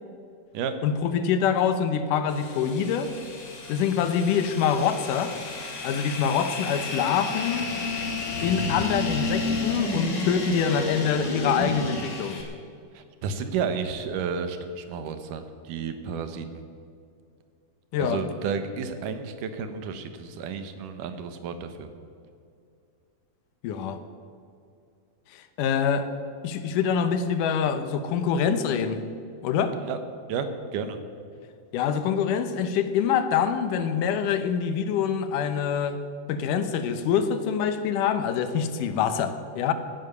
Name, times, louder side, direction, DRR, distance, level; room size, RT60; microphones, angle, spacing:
voice 1, 0.8-3.1 3.7-5.4 5.8-7.7 8.4-12.4 17.9-18.2 23.6-24.0 25.3-26.1 26.4-29.0 29.4-29.8 31.7-36.0 36.3-39.7, left 7 dB, 80° left, 10 dB, 2.4 m, -25 dB
sound 1, 2.3-12.4, left 3 dB, 40° left, 2.8 m, -31 dB
voice 2, 12.9-16.6 18.0-21.9 29.8-30.0 30.3-31.0, right 6 dB, 80° right, 9 dB, 2.6 m, -32 dB
16.5 x 9.7 x 6.8 m, 2.4 s
omnidirectional pair, 3.8 m